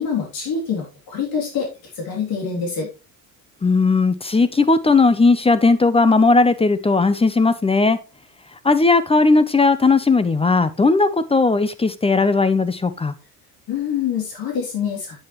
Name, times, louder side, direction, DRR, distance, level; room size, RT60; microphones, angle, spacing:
voice 1, 0.0-1.7 1.9-2.9 13.7-15.2, left 6 dB, 60° left, 0 dB, 3.2 m, -25 dB
voice 2, 3.6-8.0 8.6-13.1, left 3 dB, 15° left, 14 dB, 0.6 m, -17 dB
8.4 x 7.9 x 3.1 m, 0.29 s
cardioid pair, 110°, 40 cm